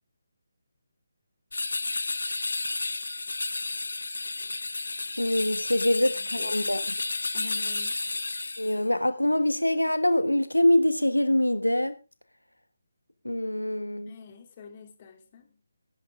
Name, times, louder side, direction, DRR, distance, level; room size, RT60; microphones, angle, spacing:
sound 1, 1.5-8.8, left 3 dB, 65° left, 0.6 m, -32 dB
voice 1, 5.2-6.8 8.6-11.9 13.2-14.1, left 1 dB, 85° left, 11 dB, 1.2 m, -24 dB
voice 2, 6.1-6.7 7.3-8.0 14.1-15.5, left 5 dB, 30° left, 4 dB, 3.1 m, -46 dB
17.0 x 11.5 x 3.6 m, 0.31 s
figure-of-eight pair, 150°, 0 cm